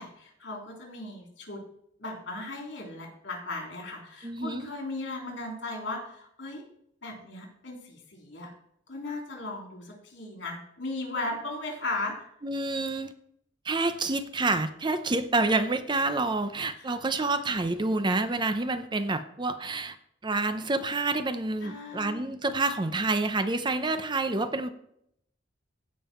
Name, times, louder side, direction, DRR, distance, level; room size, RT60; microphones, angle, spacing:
voice 1, 0.0-1.6 2.0-6.6 7.0-8.5 8.9-12.3 16.8-16.9 21.6-22.3, left 2 dB, 75° left, 1 dB, 3.4 m, -37 dB
voice 2, 4.2-4.7 12.4-13.1 13.6-20.0 20.2-24.7, right 3 dB, 25° right, 10 dB, 0.6 m, -28 dB
16.0 x 5.4 x 4.4 m, 0.72 s
head